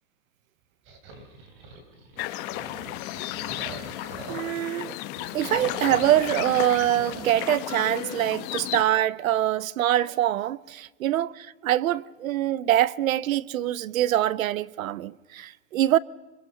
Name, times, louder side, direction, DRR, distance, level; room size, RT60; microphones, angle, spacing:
sound 1, 0.9-4.7 5.1-7.3, right 3 dB, 30° right, 3.1 m, -44 dB
sound 2, 2.2-8.8, left 15 dB, 25° left, 0.9 m, -34 dB
voice 1, 4.3-5.0 5.3-16.0, right 13 dB, 80° right, 0.8 m, -24 dB
25.5 x 22.5 x 6.6 m
supercardioid pair, 170°, 40 cm